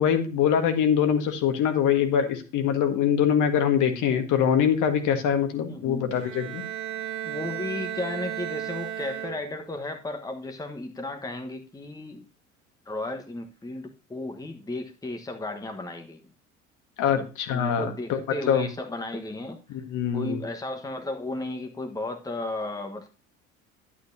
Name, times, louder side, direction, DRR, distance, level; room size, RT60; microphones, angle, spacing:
voice 1, 0.0-6.6 17.0-18.2 18.5-18.7 19.7-20.4, left 8 dB, 50° left, 6 dB, 1.7 m, -23 dB
voice 2, 5.7-6.2 7.2-12.3 12.9-16.3 17.1-19.6 20.1-23.1, left 2 dB, 10° left, 5 dB, 1.2 m, -34 dB
Bowed string instrument, 6.1-9.8, right 11 dB, 65° right, 2.0 m, -34 dB
11.0 x 8.9 x 2.7 m, 0.34 s
figure-of-eight pair, 60°, 39 cm